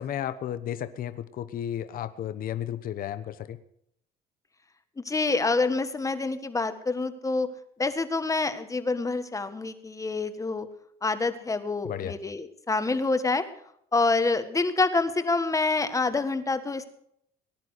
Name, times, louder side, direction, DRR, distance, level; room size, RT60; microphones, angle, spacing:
voice 1, 0.0-3.6 11.8-12.2, left 10 dB, 55° left, 12 dB, 1.0 m, -33 dB
voice 2, 5.0-7.5 7.8-10.7 11.0-13.4 13.9-16.9, left 3 dB, 20° left, 10 dB, 1.6 m, -27 dB
19.5 x 10.5 x 6.5 m, 0.71 s
cardioid pair, 110°, 17 cm